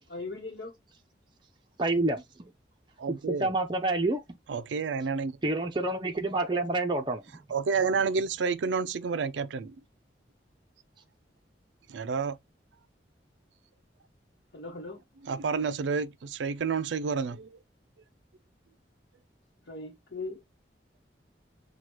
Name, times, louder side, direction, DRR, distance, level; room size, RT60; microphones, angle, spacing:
voice 1, 0.1-0.8 14.5-15.0 19.7-20.4, left 3 dB, 75° left, 1.0 m, -39 dB
voice 2, 1.8-2.5 3.4-4.4 5.4-7.2, right 2 dB, 25° right, 0.6 m, -28 dB
voice 3, 3.0-3.5 4.5-5.4 7.5-9.8 11.9-12.4 15.2-17.5, right 5 dB, 90° right, 0.4 m, -30 dB
6.2 x 2.3 x 2.9 m
head